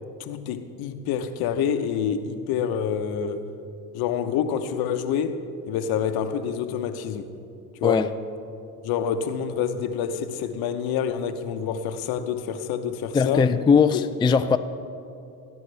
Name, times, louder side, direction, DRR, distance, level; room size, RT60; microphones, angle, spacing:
voice 1, 0.2-3.5 3.9-5.4 5.7-7.3 7.8-8.1 8.8-13.5 13.9-14.0, left 8 dB, 65° left, 0.9 m, -27 dB
voice 2, 13.1-14.6, left 6 dB, 10° left, 0.4 m, -19 dB
19.0 x 10.0 x 3.4 m
hypercardioid pair, 70°, 40 cm